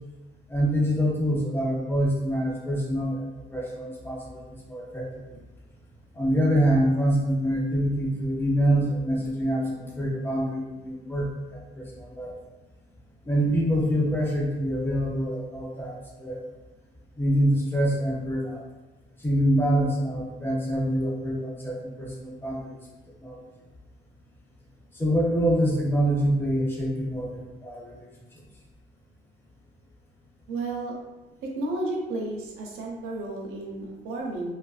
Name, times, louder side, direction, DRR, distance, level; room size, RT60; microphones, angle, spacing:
voice 1, 0.5-5.0 6.1-12.3 13.3-16.4 17.2-18.6 19.2-22.8 23.2-23.4 24.9-28.0 28.3-28.4, equal, 10° left, -3 dB, 0.4 m, -25 dB
voice 2, 30.5-30.9 31.4-34.5, right 2 dB, 85° right, -2 dB, 0.6 m, -32 dB
2.5 x 2.4 x 2.3 m, 1.1 s
cardioid pair, 155°, 21 cm